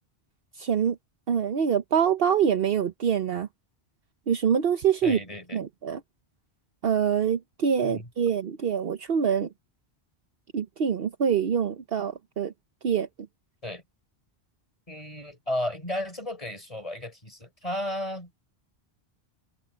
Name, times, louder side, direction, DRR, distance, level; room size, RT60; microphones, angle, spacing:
voice 1, 0.6-1.0 1.3-3.5 4.3-5.2 5.5-6.0 6.8-9.5 10.5-12.5 12.8-13.1, right 7 dB, 65° right, 1.1 m, -25 dB
voice 2, 5.0-5.6 7.8-8.1 13.6-13.8 14.9-18.3, left 1 dB, 30° left, 4.6 m, -34 dB
omnidirectional pair, 1.1 m